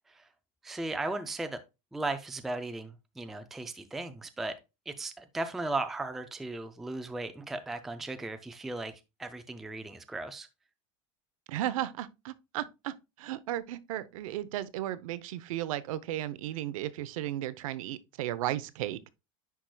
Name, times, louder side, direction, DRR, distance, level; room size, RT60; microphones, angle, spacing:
voice 1, 0.6-1.6 1.9-4.6 4.9-10.5, right 2 dB, ahead, 0.3 m, -36 dB
voice 2, 11.5-19.0, right 13 dB, 80° right, 0.7 m, -35 dB
10.0 x 4.7 x 2.2 m
supercardioid pair, 160°, 17 cm